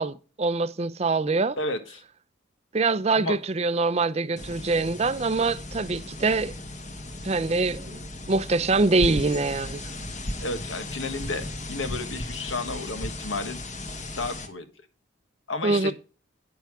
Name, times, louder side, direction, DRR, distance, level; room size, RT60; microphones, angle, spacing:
voice 1, 0.0-1.6 2.7-6.5 7.2-8.0 8.3-9.8 15.6-15.9, right 3 dB, 30° right, 0.5 m, -24 dB
voice 2, 1.6-2.0 3.1-3.4 10.4-13.6 14.2-14.7 15.5-15.9, left 2 dB, 80° left, 1.6 m, -32 dB
sound 1, 4.4-14.5, left 1 dB, 40° left, 1.4 m, -36 dB
9.4 x 6.7 x 4.7 m
head